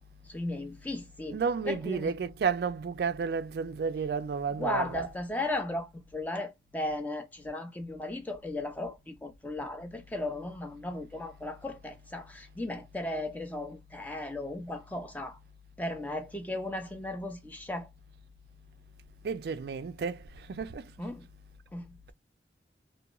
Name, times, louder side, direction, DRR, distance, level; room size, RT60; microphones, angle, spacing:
voice 1, 0.2-1.4 1.7-2.2 4.5-15.4 15.8-17.9 21.0-21.3 21.7-22.1, left 1 dB, 10° left, 0.4 m, -36 dB
voice 2, 1.3-5.1 19.2-20.9, right 5 dB, 60° right, 0.3 m, -32 dB
2.9 x 2.2 x 2.2 m
head